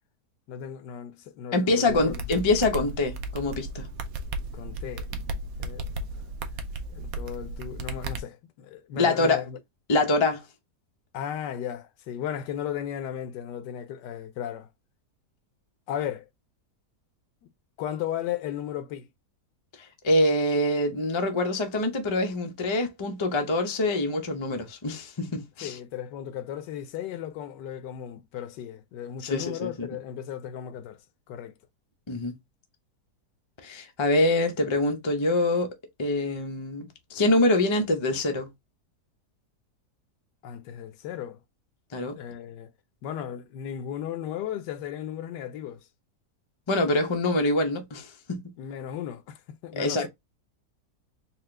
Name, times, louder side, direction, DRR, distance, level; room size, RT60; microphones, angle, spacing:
voice 1, 0.5-2.2 4.5-5.1 5.6-5.9 6.9-9.6 11.1-14.7 15.9-16.3 17.4-17.5 17.8-19.1 25.6-31.0 31.3-31.5 40.4-41.4 42.1-42.7 43.0-45.9 48.6-50.1, left 10 dB, 85° left, 1.2 m, -35 dB
voice 2, 1.5-3.9 9.0-9.4 9.9-10.5 19.8-25.8 29.2-29.9 32.1-32.4 33.6-35.7 36.0-38.5 41.9-42.2 46.7-48.4 49.7-50.1, left 2 dB, 45° left, 0.3 m, -25 dB
sound 1, 1.9-8.2, right 2 dB, 65° right, 1.0 m, -35 dB
4.3 x 2.4 x 3.2 m
omnidirectional pair, 1.8 m